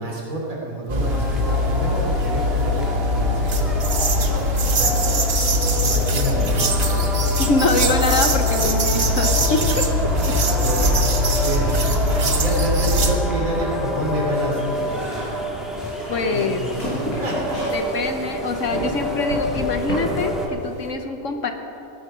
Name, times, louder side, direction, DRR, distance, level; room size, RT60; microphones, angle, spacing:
voice 1, 0.0-3.6 4.8-5.2 5.7-6.4 10.5-11.7 12.2-15.2 16.3-17.6, equal, 65° right, -3 dB, 3.5 m, -28 dB
sound 1, 0.9-13.1, left 1 dB, 40° right, 1.1 m, -21 dB
sound 2, 1.0-20.5, equal, ahead, 1.5 m, -28 dB
voice 2, 7.4-9.8 10.3-10.4 10.8-10.9 16.1-16.6 17.7-21.5, left 3 dB, 60° left, 6 dB, 1.2 m, -24 dB
sound 3, 11.1-20.9, left 1 dB, 85° left, 4.9 m, -33 dB
17.5 x 11.0 x 5.5 m, 2.9 s
omnidirectional pair, 1.6 m